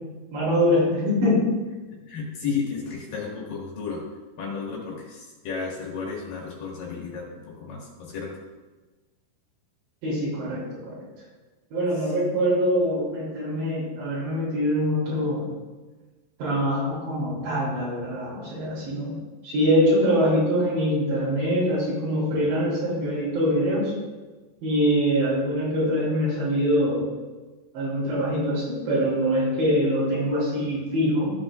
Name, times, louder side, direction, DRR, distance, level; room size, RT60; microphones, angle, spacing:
voice 1, 0.3-1.5 10.0-11.0 11.7-15.5 16.4-19.1 19.4-23.9 24.6-27.0 27.7-31.3, equal, 80° right, -8 dB, 5.5 m, -24 dB
voice 2, 2.1-4.0 4.4-8.4, left 5 dB, 60° left, -4 dB, 3.3 m, -33 dB
15.0 x 7.7 x 2.5 m, 1.3 s
omnidirectional pair, 5.0 m